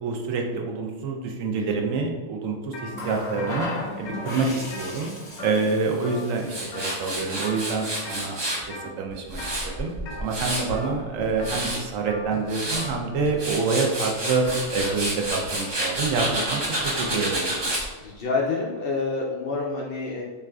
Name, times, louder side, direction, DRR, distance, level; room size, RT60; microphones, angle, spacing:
voice 1, 0.0-3.7 4.0-5.1 5.4-8.3 8.7-9.9 10.2-14.4 14.7-17.5, right 4 dB, 75° right, 1 dB, 1.0 m, -27 dB
sound 1, 2.7-2.9 3.2-5.8 6.0-6.4 6.7-7.1 7.4-8.2 8.7-9.0 9.3-13.0, left 2 dB, 80° left, 1.0 m, -39 dB
Water tap faucet, 2.9-8.5 9.7-9.9, left 2 dB, 30° left, 0.8 m, -37 dB
Tools, 6.5-8.6 9.1-10.8 11.2-11.8 12.3-12.9 13.3-17.8, right 1 dB, 30° right, 0.5 m, -29 dB
voice 2, 18.0-20.2, left 3 dB, 65° left, -3 dB, 0.6 m, -28 dB
5.5 x 2.5 x 2.3 m, 1.4 s
omnidirectional pair, 1.4 m